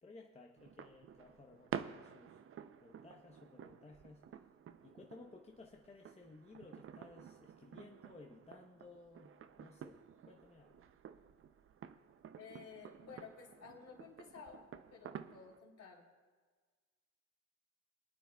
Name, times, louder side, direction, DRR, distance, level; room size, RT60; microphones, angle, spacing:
voice 1, 0.0-2.4 2.8-4.2 4.8-10.8, left 3 dB, 20° left, 1 dB, 0.9 m, -58 dB
sound 1, 0.6-15.6, right 8 dB, 45° right, 0.5 m, -51 dB
voice 2, 12.4-16.1, left 5 dB, 60° left, -2 dB, 3.3 m, -54 dB
26.0 x 9.2 x 2.3 m, 1.4 s
cardioid pair, 90°, 30 cm